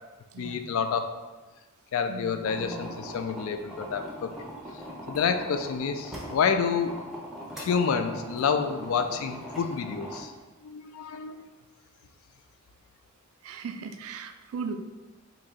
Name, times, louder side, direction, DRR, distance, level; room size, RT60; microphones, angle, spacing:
voice 1, 0.4-1.1 1.9-4.3 5.1-6.9 7.6-10.3 10.6-11.5, left 6 dB, 75° left, 8 dB, 0.3 m, -28 dB
voice 2, 2.1-2.9 13.4-14.8, right 5 dB, 80° right, 8 dB, 0.3 m, -38 dB
sound 1, 2.4-10.2, equal, ahead, 0.5 m, -41 dB
3.0 x 2.6 x 3.7 m, 1.2 s
head